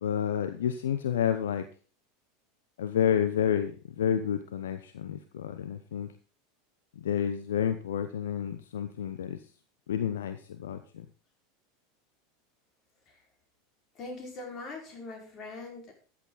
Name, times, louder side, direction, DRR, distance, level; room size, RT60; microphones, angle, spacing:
voice 1, 0.0-1.7 2.8-6.1 7.0-9.4 9.9-11.0, left 9 dB, 70° left, 10 dB, 0.8 m, -30 dB
voice 2, 13.9-15.9, left 3 dB, 40° left, 1 dB, 5.0 m, -42 dB
13.5 x 8.7 x 4.1 m, 0.39 s
figure-of-eight pair, 85°, 0 cm